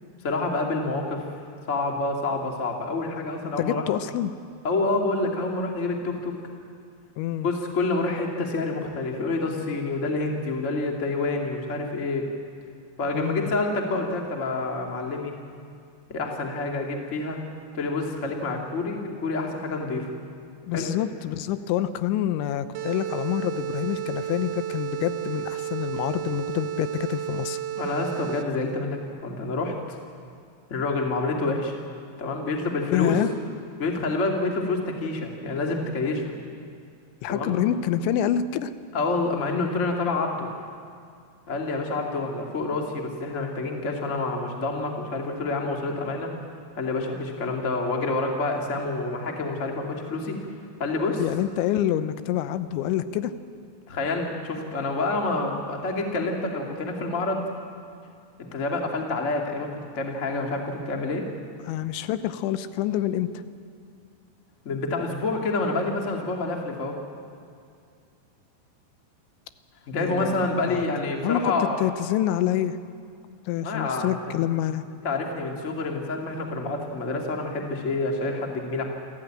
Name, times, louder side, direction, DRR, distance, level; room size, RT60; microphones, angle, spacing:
voice 1, 0.2-1.2 1.7-3.9 4.6-6.4 7.4-12.3 13.0-15.3 16.1-17.4 17.7-20.1 20.7-20.9 27.8-29.7 30.7-31.8 32.2-33.2 33.8-36.4 37.3-37.6 38.9-40.5 41.5-46.3 46.8-50.4 50.8-51.2 53.9-57.4 58.4-61.2 64.6-67.0 69.9-71.8 73.6-74.1 75.0-78.8, left 3 dB, 30° left, 1 dB, 1.3 m, -28 dB
voice 2, 3.6-4.3 7.2-7.5 13.1-13.5 20.6-27.6 32.9-33.3 37.2-38.7 51.2-53.3 61.7-63.3 69.9-70.8 71.2-72.8 73.5-74.8, left 11 dB, 85° left, 12 dB, 3.2 m, -27 dB
sound 1, 22.7-28.7, right 11 dB, 80° right, 2.9 m, -32 dB
27.5 x 14.0 x 8.8 m, 2.3 s
omnidirectional pair, 5.2 m